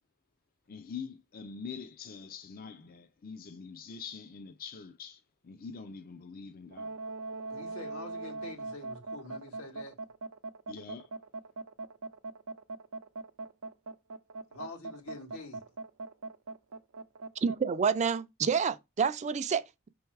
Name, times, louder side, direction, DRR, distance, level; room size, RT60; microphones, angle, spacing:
voice 1, 0.7-7.1 10.7-11.1, left 5 dB, 45° left, 0.5 m, -44 dB
sound 1, 6.7-17.6, right 3 dB, 90° right, 0.6 m, -40 dB
voice 2, 7.5-9.9 14.5-15.6, left 3 dB, 90° left, 2.0 m, -46 dB
voice 3, 17.4-19.9, right 6 dB, 35° right, 0.4 m, -29 dB
6.2 x 3.5 x 4.6 m
head